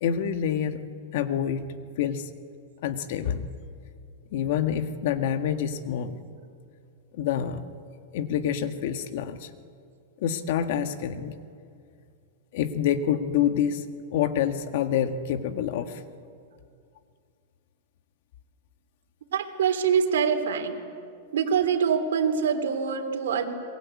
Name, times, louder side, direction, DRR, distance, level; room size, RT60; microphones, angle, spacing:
voice 1, 0.0-0.8 1.1-1.7 2.0-2.3 2.8-3.4 4.3-6.2 7.1-7.6 8.1-9.5 10.2-11.3 12.5-13.8 14.1-16.0, left 9 dB, 60° left, 8 dB, 1.7 m, -27 dB
voice 2, 19.3-20.8 21.3-23.4, right 7 dB, 85° right, 5 dB, 3.3 m, -24 dB
27.0 x 21.5 x 8.5 m, 2.3 s
supercardioid pair, 150°, 0 cm